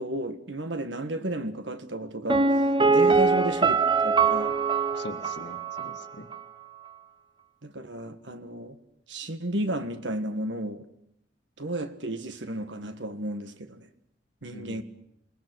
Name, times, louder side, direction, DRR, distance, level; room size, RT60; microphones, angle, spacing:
voice 1, 0.0-3.7 4.0-4.5 7.6-8.8 9.1-10.8 11.6-13.9 14.4-14.8, right 1 dB, 80° right, 1.7 m, -33 dB
Piano, 2.3-6.1 6.3-6.4, right 4 dB, 25° right, 1.0 m, -23 dB
voice 2, 4.9-6.3 14.5-14.8, left 1 dB, 70° left, 1.8 m, -42 dB
28.0 x 20.0 x 6.3 m
head